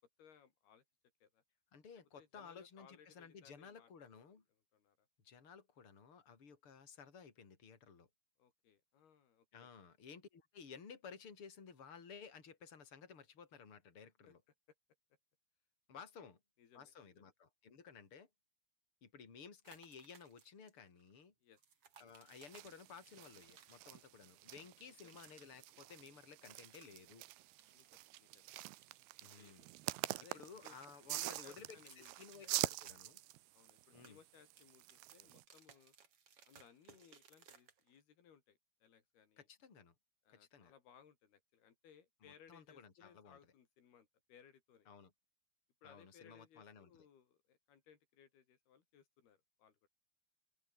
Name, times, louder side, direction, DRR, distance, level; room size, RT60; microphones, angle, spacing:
voice 1, 0.2-0.8 1.2-1.4 2.2-4.4 4.7-5.1 8.4-9.7 14.3-14.4 15.9-16.3 16.6-17.3 21.4-21.6 24.8-25.2 27.7-28.5 29.4-29.5 30.2-30.8 31.1-32.1 32.4-32.6 33.5-36.0 36.4-39.5 40.2-44.9 45.8-49.9, left 8 dB, 80° left, 5.0 m, -65 dB
voice 2, 1.7-4.4 5.2-8.1 9.5-14.4 15.9-16.4 16.7-18.3 19.0-21.3 22.0-27.2 29.2-29.7 30.3-33.2 33.9-34.2 39.4-39.9 40.3-40.7 42.2-43.4 44.9-45.1 45.8-47.1, left 6 dB, 35° left, 4.6 m, -56 dB
sound 1, 19.6-20.7 21.0-21.1 21.5-24.3 24.6-25.6 26.4-27.3 27.6-28.9 29.2-30.2 30.5-33.4 33.7-38.0, right 7 dB, 40° right, 2.8 m, -65 dB
sound 2, 22.3-35.4, right 19 dB, 85° right, 2.8 m, -46 dB
open air
omnidirectional pair, 4.5 m